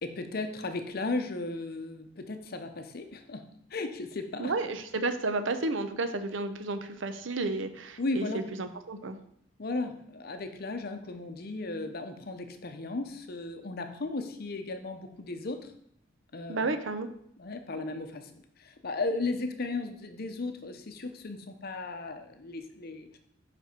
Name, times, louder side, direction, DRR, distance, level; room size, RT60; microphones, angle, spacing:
voice 1, 0.0-3.4 3.7-4.5 8.0-8.5 9.6-15.7 16.3-16.7 17.4-18.3 18.6-23.2, left 3 dB, 50° left, 7 dB, 0.7 m, -35 dB
voice 2, 4.4-9.2 16.5-17.1, right 3 dB, 75° right, 9 dB, 0.7 m, -32 dB
5.4 x 5.2 x 5.1 m, 0.68 s
head